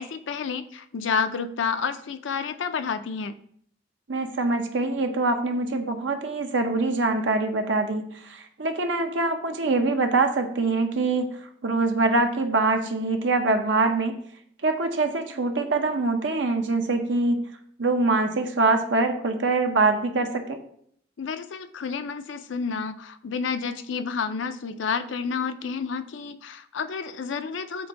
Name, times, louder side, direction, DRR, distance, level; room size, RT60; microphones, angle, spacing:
voice 1, 0.0-3.4 21.2-27.9, left 5 dB, 80° left, 11 dB, 0.5 m, -30 dB
voice 2, 4.1-11.4 11.6-14.2 14.6-17.5 17.8-20.6, right 3 dB, 75° right, 5 dB, 0.8 m, -24 dB
7.7 x 2.6 x 4.9 m, 0.64 s
head